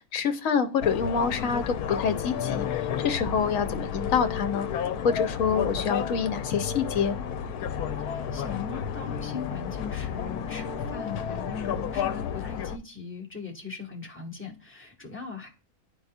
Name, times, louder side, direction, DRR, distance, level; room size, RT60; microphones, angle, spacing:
voice 1, 0.1-2.7 3.0-4.7 5.0-7.2, left 6 dB, 65° left, 8 dB, 1.2 m, -26 dB
sound 1, 0.8-12.8, left 8 dB, 90° left, 1.1 m, -31 dB
voice 2, 8.0-15.5, left 5 dB, 10° left, -1 dB, 1.5 m, -39 dB
11.5 x 4.0 x 2.4 m, 0.34 s
omnidirectional pair, 1.6 m